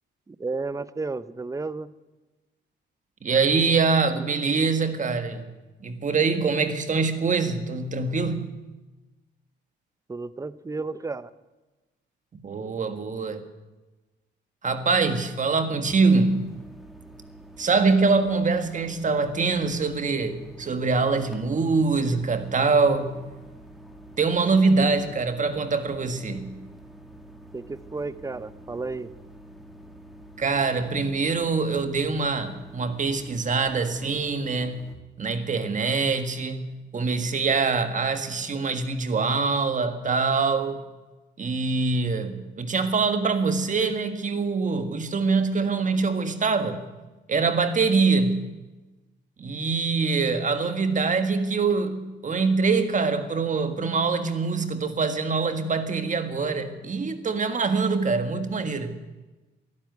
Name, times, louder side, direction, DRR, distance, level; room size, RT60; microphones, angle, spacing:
voice 1, 0.3-1.9 10.1-11.3 27.5-29.1, right 3 dB, 15° right, 16 dB, 0.6 m, -32 dB
voice 2, 3.2-5.4 5.8-8.5 12.4-13.4 14.6-16.5 17.6-23.3 24.2-26.6 30.4-40.9 41.4-46.8 47.3-48.5 49.4-59.0, right 4 dB, 40° right, 9 dB, 1.6 m, -24 dB
sound 1, 15.9-35.0, right 1 dB, ahead, 2.1 m, -47 dB
13.0 x 11.5 x 9.4 m, 1.2 s
cardioid pair, 90°, 20 cm